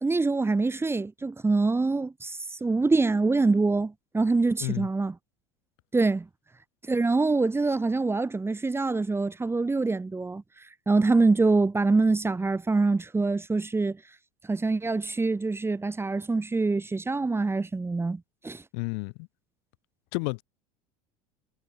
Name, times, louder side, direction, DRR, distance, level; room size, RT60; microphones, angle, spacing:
voice 1, 0.0-5.1 5.9-6.3 6.9-10.4 10.9-14.0 14.5-18.6, right 3 dB, 15° right, 1.7 m, -25 dB
voice 2, 18.7-19.3 20.1-20.4, left 33 dB, 70° left, 3.0 m, -31 dB
hypercardioid pair, 85°, 17 cm